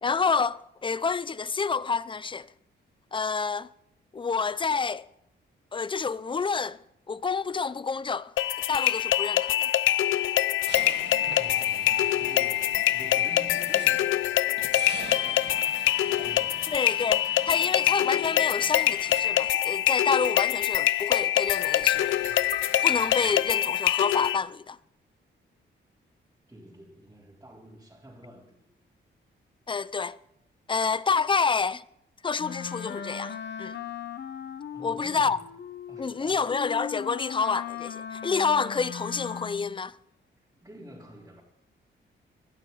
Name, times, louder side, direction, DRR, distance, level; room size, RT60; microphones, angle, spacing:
voice 1, 0.0-2.5 3.1-3.7 4.1-5.0 5.7-8.3 8.7-9.7 16.7-22.2 22.8-24.8 29.7-30.2 30.7-31.8 32.2-33.8 34.8-35.4 36.0-40.0, left 5 dB, 25° left, 0.6 m, -28 dB
sound 1, 8.4-24.4, left 13 dB, 75° left, 0.5 m, -25 dB
sound 2, 10.7-14.2 14.6-20.1 20.4-23.3, right 6 dB, 60° right, 1.9 m, -44 dB
voice 2, 11.3-12.6 12.9-15.7 16.1-16.8 26.5-28.7 34.7-35.5 35.9-36.6 40.6-41.4, equal, 15° right, 3.7 m, -48 dB
Wind instrument woodwind instrument, 32.4-39.8, left 8 dB, 60° left, 1.2 m, -38 dB
20.0 x 12.5 x 4.0 m
cardioid pair, 95°, 20 cm